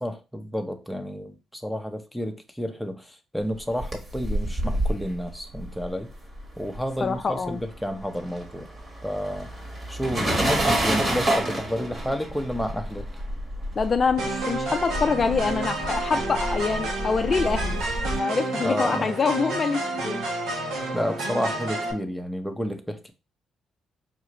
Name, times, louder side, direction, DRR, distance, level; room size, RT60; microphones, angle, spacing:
voice 1, 0.0-6.1 6.6-8.7 9.0-9.5 9.9-13.1 18.6-19.2 20.9-23.1, equal, ahead, 0.7 m, -30 dB
sound 1, 3.5-7.2 7.5-18.2, right 1 dB, 30° right, 1.3 m, -29 dB
voice 2, 7.0-7.6 13.8-17.8 18.2-20.2, left 5 dB, 40° left, 0.4 m, -25 dB
sound 2, 14.2-21.9, right 2 dB, 90° right, 1.1 m, -30 dB
4.9 x 2.4 x 3.0 m
cardioid pair, 90°, 0 cm